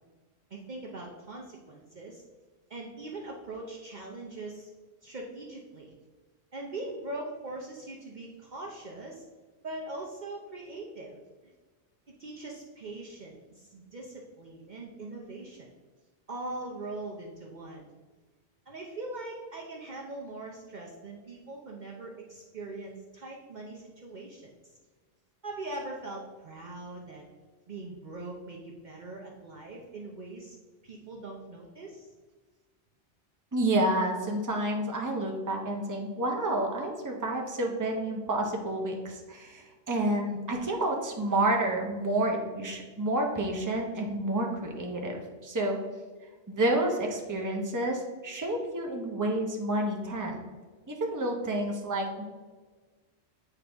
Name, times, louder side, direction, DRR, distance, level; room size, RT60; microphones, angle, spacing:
voice 1, 0.5-2.2 2.7-4.7 5.0-6.0 6.5-9.2 9.6-11.2 12.2-15.7 16.3-17.9 18.7-24.4 25.4-27.2 27.7-30.6 30.8-32.1, right 2 dB, 50° right, -1 dB, 0.8 m, -41 dB
voice 2, 33.5-45.8 46.5-50.4 50.9-52.2, right 1 dB, 20° right, 1 dB, 0.8 m, -29 dB
8.3 x 3.8 x 3.4 m, 1.4 s
omnidirectional pair, 1.1 m